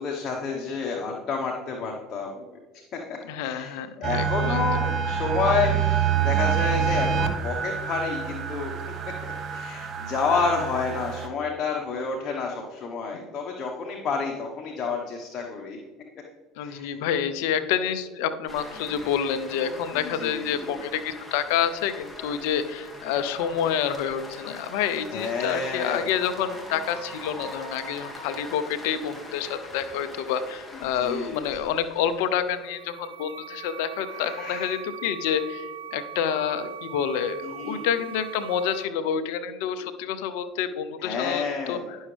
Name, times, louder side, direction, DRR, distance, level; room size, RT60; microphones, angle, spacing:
voice 1, 0.0-2.4 2.9-8.7 9.5-15.8 16.6-17.0 19.9-20.8 25.1-26.1 31.0-31.4 34.1-34.7 37.4-37.8 41.0-41.9, left 5 dB, 45° left, 0 dB, 1.2 m, -29 dB
voice 2, 3.2-4.8 16.6-42.1, left 8 dB, 75° left, 11 dB, 0.6 m, -28 dB
sound 1, 4.0-11.3, right 7 dB, 45° right, 0.8 m, -27 dB
sound 2, 18.5-32.7, left 1 dB, 5° left, 2.0 m, -42 dB
sound 3, 32.3-38.8, right 9 dB, 85° right, 0.4 m, -41 dB
10.5 x 6.3 x 3.4 m, 1.3 s
hypercardioid pair, 75°, 0 cm